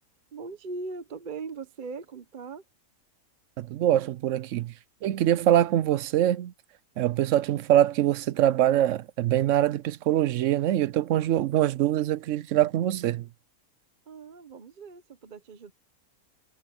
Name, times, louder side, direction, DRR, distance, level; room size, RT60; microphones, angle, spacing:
voice 1, 0.3-2.6 14.1-15.7, right 4 dB, 40° right, 0.9 m, -39 dB
voice 2, 3.6-4.7 5.0-6.5 7.0-13.3, right 12 dB, 65° right, 0.8 m, -24 dB
omnidirectional pair, 1.6 m